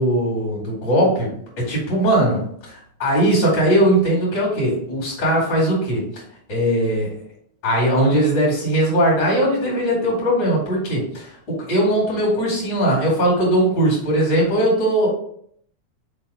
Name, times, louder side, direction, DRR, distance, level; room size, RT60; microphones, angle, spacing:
voice 1, 0.0-2.4 3.0-6.0 6.5-7.1 7.6-15.1, right 1 dB, 35° left, -4 dB, 2.8 m, -19 dB
5.2 x 4.3 x 4.9 m, 0.65 s
omnidirectional pair, 3.6 m